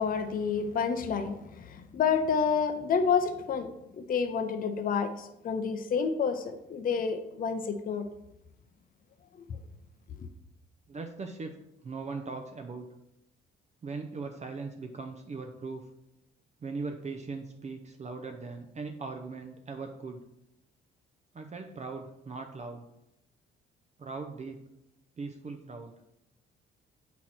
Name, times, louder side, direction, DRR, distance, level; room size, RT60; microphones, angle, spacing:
voice 1, 0.0-3.7 4.0-8.0, left 6 dB, 45° left, 7 dB, 0.6 m, -29 dB
voice 2, 10.9-11.5 11.8-12.9 13.8-15.9 16.6-20.2 21.3-22.9 24.0-24.6 25.2-25.9, right 4 dB, 35° right, 4 dB, 0.6 m, -39 dB
6.2 x 4.1 x 4.3 m, 0.86 s
cardioid pair, 90°, 20 cm